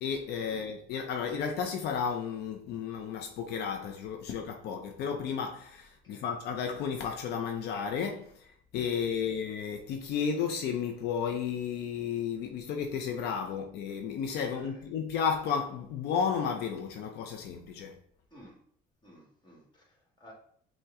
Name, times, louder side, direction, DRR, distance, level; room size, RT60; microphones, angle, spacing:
voice 1, 0.0-8.4 8.7-18.0, left 6 dB, 75° left, 0.5 m, -33 dB
voice 2, 6.0-6.4 8.9-9.4 14.5-14.9 18.3-18.6 19.0-20.3, equal, 25° left, 1.4 m, -55 dB
5.6 x 2.2 x 3.5 m
cardioid pair, 110°, 17 cm